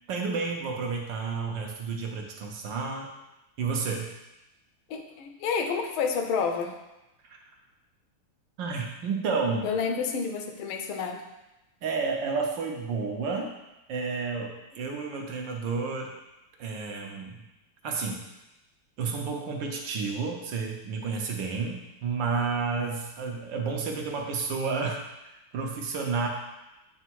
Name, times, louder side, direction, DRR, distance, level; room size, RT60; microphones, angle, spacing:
voice 1, 0.1-3.1 3.6-4.1 8.6-9.7 11.8-13.5 13.9-16.1 16.6-17.4 17.8-18.2 19.0-25.0 25.5-26.3, right 4 dB, 65° right, 1 dB, 1.4 m, -31 dB
voice 2, 4.9-6.7 9.6-11.2, left 5 dB, 75° left, 5 dB, 1.5 m, -29 dB
8.1 x 3.4 x 4.6 m, 0.96 s
omnidirectional pair, 2.4 m